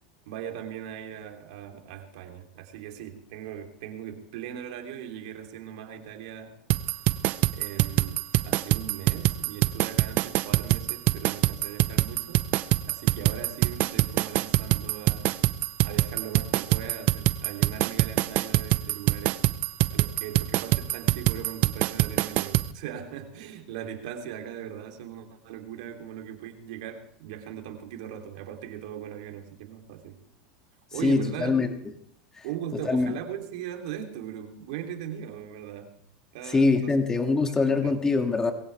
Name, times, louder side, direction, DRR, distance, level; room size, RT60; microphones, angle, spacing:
voice 1, 0.2-6.5 7.5-12.4 12.8-15.3 15.8-19.4 19.9-30.2 30.9-31.5 32.4-35.9 36.3-37.0 37.4-37.9, right 10 dB, 70° right, 4 dB, 3.1 m, -39 dB
sound 1, 6.7-22.7, right 17 dB, 50° right, 0.7 m, -24 dB
voice 2, 31.0-31.7 32.4-32.5 32.8-33.1 36.5-38.5, left 3 dB, 15° left, 5 dB, 2.3 m, -23 dB
21.5 x 16.0 x 3.5 m, 0.64 s
supercardioid pair, 115°, 4 cm